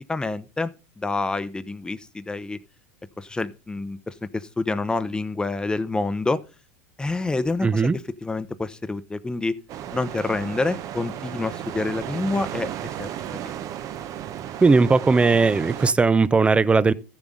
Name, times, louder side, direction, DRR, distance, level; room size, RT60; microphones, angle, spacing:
voice 1, 0.1-0.7 1.0-2.6 3.2-6.4 7.0-9.5 9.9-12.7 13.0-13.1, left 3 dB, 10° left, 0.9 m, -27 dB
voice 2, 7.6-8.0 14.6-16.9, right 4 dB, 15° right, 0.6 m, -18 dB
sound 1, 9.7-15.9, right 10 dB, 45° right, 0.9 m, -34 dB
14.5 x 7.3 x 3.9 m
hypercardioid pair, 100°, 8 cm